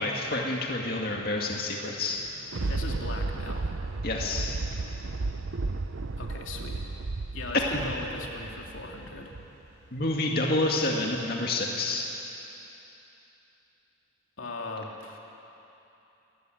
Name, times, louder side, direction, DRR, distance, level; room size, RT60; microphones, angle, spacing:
voice 1, 0.0-2.2 4.0-4.5 7.5-7.9 9.9-12.1, left 2 dB, 50° left, -1 dB, 2.2 m, -28 dB
Thunder, 2.1-9.7 10.1-10.2, right 3 dB, 85° right, 0.7 m, -34 dB
sound 1, 2.6-10.6, left 1 dB, 35° right, 7.9 m, -58 dB
voice 2, 2.7-3.8 6.2-6.9 7.3-9.3 14.4-15.2, left 2 dB, 80° left, 0 dB, 2.7 m, -39 dB
27.5 x 15.5 x 9.5 m, 3.0 s
head